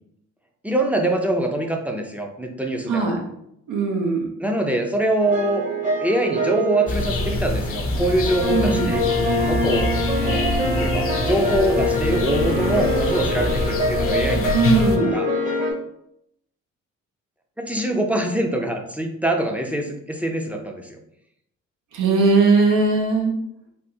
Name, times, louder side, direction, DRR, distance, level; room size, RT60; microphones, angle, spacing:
voice 1, 0.6-3.1 4.4-5.6 6.0-14.6 15.1-15.3 17.6-21.0, right 1 dB, 5° right, 2 dB, 0.4 m, -24 dB
voice 2, 2.9-3.2 3.7-4.3 8.5-8.9 14.5-15.2 21.9-23.3, right 3 dB, 85° right, 1 dB, 0.7 m, -19 dB
sound 1, 5.2-15.7, left 1 dB, 25° right, 0.8 m, -25 dB
sound 2, 6.9-15.0, left 2 dB, 45° left, 0.5 m, -25 dB
3.4 x 2.4 x 2.7 m, 0.76 s
cardioid pair, 90°, 30 cm